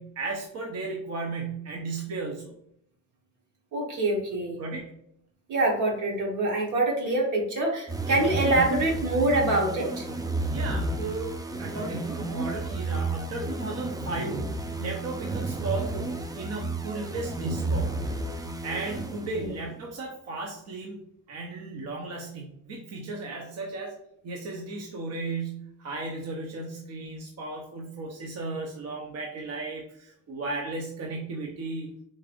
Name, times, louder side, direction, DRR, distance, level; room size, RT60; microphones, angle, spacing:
voice 1, 0.0-2.5 4.6-5.0 10.5-18.0 18.6-21.0 21.3-23.9 24.2-31.9, right 3 dB, 55° right, -1 dB, 0.8 m, -35 dB
voice 2, 3.7-4.6 5.5-10.1 19.3-19.6, right 2 dB, 80° right, -1 dB, 1.3 m, -25 dB
sound 1, 7.9-19.6, right 2 dB, 15° right, 0.4 m, -32 dB
3.9 x 3.3 x 2.5 m, 0.71 s
cardioid pair, 90°, 30 cm